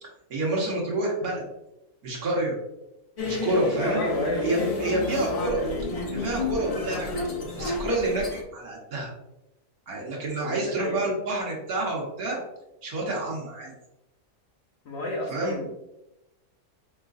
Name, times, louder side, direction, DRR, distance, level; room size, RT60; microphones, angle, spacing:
voice 1, 0.3-1.4 2.0-2.6 3.2-4.0 4.4-5.6 6.1-7.1 7.6-8.3 8.5-9.1 9.9-12.4 12.8-13.7 15.3-15.6, right 1 dB, 75° right, -2 dB, 1.7 m, -28 dB
sound 1, 3.2-8.4, left 2 dB, 75° left, 0.3 m, -30 dB
voice 2, 3.8-5.6 7.3-7.6 10.5-11.0 14.8-15.7, left 1 dB, 50° left, -1 dB, 0.9 m, -32 dB
4.8 x 3.7 x 2.5 m, 0.91 s
omnidirectional pair, 1.6 m